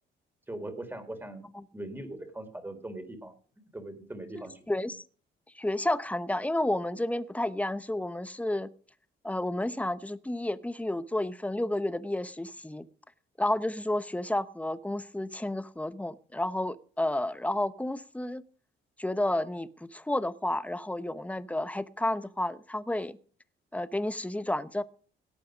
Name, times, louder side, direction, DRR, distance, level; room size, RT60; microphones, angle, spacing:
voice 1, 0.5-1.5 1.7-4.7, right 1 dB, 10° right, 8 dB, 3.8 m, -41 dB
voice 2, 4.7-5.0 5.5-8.7 9.2-12.8 13.4-18.4 19.0-23.2 23.7-24.8, left 1 dB, 5° left, 14 dB, 0.9 m, -31 dB
17.5 x 8.5 x 5.1 m, 0.43 s
cardioid pair, 90°, 20 cm